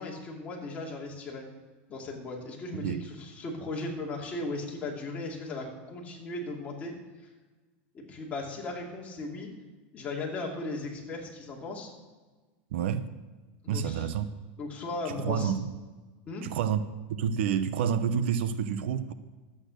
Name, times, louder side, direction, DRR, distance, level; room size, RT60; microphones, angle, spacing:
voice 1, 0.0-1.5 1.9-7.0 7.9-9.5 9.9-11.9 13.6-14.1 14.6-15.5 16.3-16.5, left 2 dB, 20° left, -2 dB, 2.7 m, -37 dB
voice 2, 12.7-13.1 13.7-14.3 15.0-15.7 16.4-16.8 17.1-19.1, right 8 dB, 75° right, 12 dB, 0.8 m, -29 dB
11.5 x 8.8 x 6.4 m, 1.3 s
supercardioid pair, 150°, 6 cm